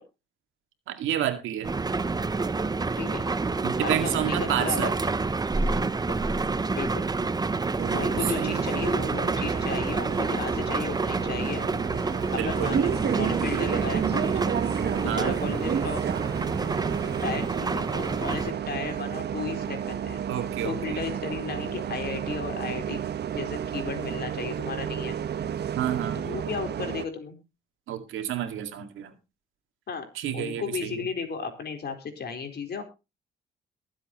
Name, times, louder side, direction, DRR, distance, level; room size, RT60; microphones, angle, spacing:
voice 1, 0.9-1.7 3.6-4.9 8.3-8.6 12.4-12.7 15.0-15.4 20.3-21.1 25.8-26.3 27.9-29.1 30.2-31.0, right 10 dB, 85° right, 2.1 m, -30 dB
sound 1, 1.6-18.5, right 3 dB, 20° right, 0.8 m, -28 dB
voice 2, 3.8-4.9 6.1-6.2 6.8-7.0 7.9-11.6 12.3-14.5 15.0-16.0 17.2-20.2 20.6-23.0 23.3-25.1 26.1-27.4 29.9-30.1 30.3-32.8, left 5 dB, 55° left, 4.2 m, -34 dB
Bus, 7.8-27.1, right 8 dB, 55° right, 1.2 m, -31 dB
22.5 x 7.9 x 3.0 m
cardioid pair, 90°, 20 cm